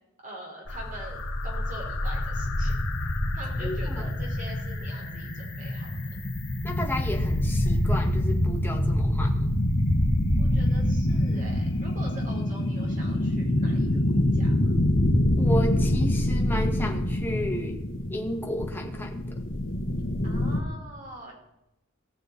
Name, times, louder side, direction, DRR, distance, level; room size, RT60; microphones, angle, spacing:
voice 1, 0.2-2.7 3.3-5.9 10.4-14.8 20.2-21.3, right 1 dB, 40° right, -1 dB, 4.3 m, -44 dB
sound 1, 0.7-20.6, left 1 dB, 65° left, 1.6 m, -26 dB
voice 2, 3.6-4.1 6.6-9.5 15.4-17.8 18.1-19.4, equal, 10° left, 1 dB, 1.7 m, -33 dB
19.0 x 6.8 x 4.1 m, 0.90 s
head